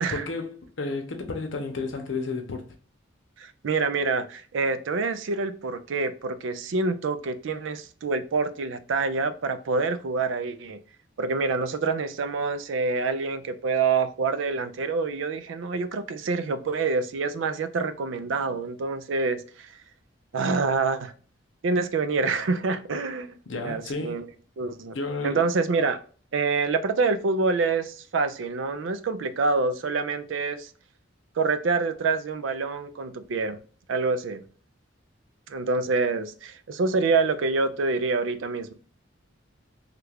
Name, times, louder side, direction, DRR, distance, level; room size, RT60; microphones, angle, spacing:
voice 1, 0.1-2.6 23.5-24.3 24.9-25.5, left 3 dB, 70° left, 0.7 m, -32 dB
voice 2, 3.4-10.8 11.2-19.7 20.3-21.1 21.6-23.4 23.6-24.2 24.6-25.0 25.2-26.0 26.3-30.7 31.4-33.6 33.9-34.4 35.5-38.7, right 4 dB, 70° right, 0.4 m, -26 dB
3.2 x 2.4 x 3.3 m
head